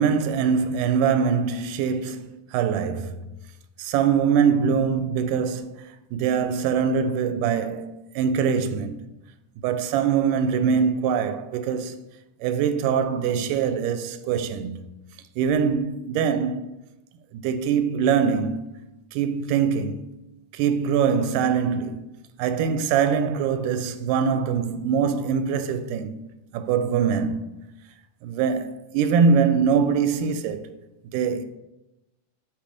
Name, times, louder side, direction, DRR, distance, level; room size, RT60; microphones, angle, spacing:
voice 1, 0.0-3.2 3.8-9.0 9.6-12.0 12.4-14.8 15.4-16.7 17.3-18.8 19.1-20.1 20.5-22.1 22.4-26.2 26.5-27.4 28.2-30.8 31.1-31.4, right 6 dB, 85° right, 2.1 m, -23 dB
6.8 x 3.1 x 5.0 m
omnidirectional pair, 3.6 m